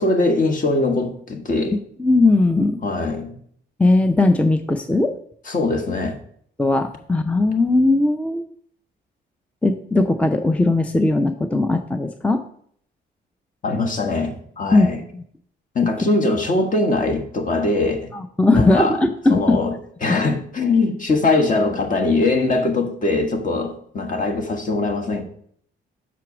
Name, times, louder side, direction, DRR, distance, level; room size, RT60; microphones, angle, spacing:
voice 1, 0.0-1.8 2.8-3.3 5.5-6.2 13.6-15.0 15.7-18.1 18.5-19.0 19.3-19.7 20.0-25.2, left 3 dB, 40° left, 1.4 m, -21 dB
voice 2, 2.0-2.8 3.8-5.2 6.6-8.4 9.6-12.4 14.7-14.9 18.1-19.6, left 2 dB, 5° left, 0.5 m, -18 dB
6.0 x 4.6 x 6.0 m
cardioid pair, 90°, 20 cm